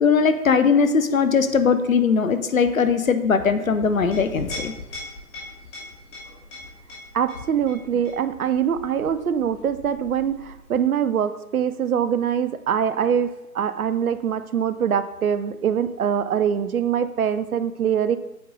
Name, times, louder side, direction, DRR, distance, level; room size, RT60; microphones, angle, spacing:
voice 1, 0.0-4.7, left 5 dB, 65° left, 10 dB, 0.7 m, -20 dB
Chink clink, 3.9-11.0, left 1 dB, 20° left, 2.3 m, -40 dB
voice 2, 7.1-18.2, right 8 dB, 70° right, 13 dB, 0.6 m, -23 dB
8.4 x 3.8 x 3.9 m, 0.95 s
figure-of-eight pair, 145°, 45 cm